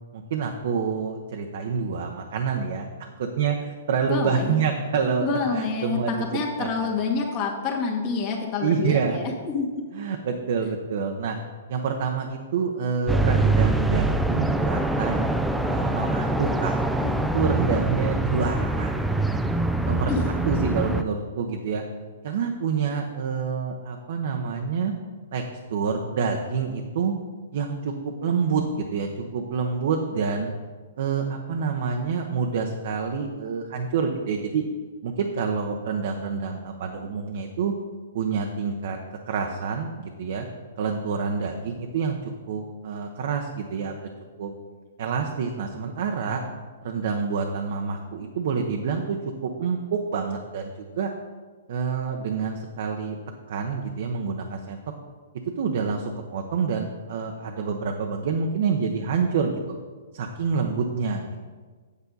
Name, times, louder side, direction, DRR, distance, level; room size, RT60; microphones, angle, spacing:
voice 1, 0.0-6.7 8.6-9.2 9.9-11.4 11.7-15.3 15.7-18.9 19.8-21.8 22.2-24.9 25.3-25.4 25.7-27.1 27.5-27.9 28.2-29.1 29.3-30.5 31.0-34.6 35.0-37.7 38.1-39.0 39.3-40.5 40.8-42.2 42.5-43.9 44.4-44.5 45.0-46.4 46.8-51.1 51.7-53.2 53.5-54.8 55.6-59.8 60.1-61.5, right 5 dB, 60° right, 3 dB, 0.8 m, -27 dB
voice 2, 4.1-4.6 5.2-9.7 20.1-20.2, left 5 dB, 35° left, -1 dB, 1.5 m, -27 dB
sound 1, 13.1-21.0, right 2 dB, 5° right, 0.4 m, -24 dB
8.2 x 7.9 x 4.0 m, 1.4 s
hypercardioid pair, 130°, 0 cm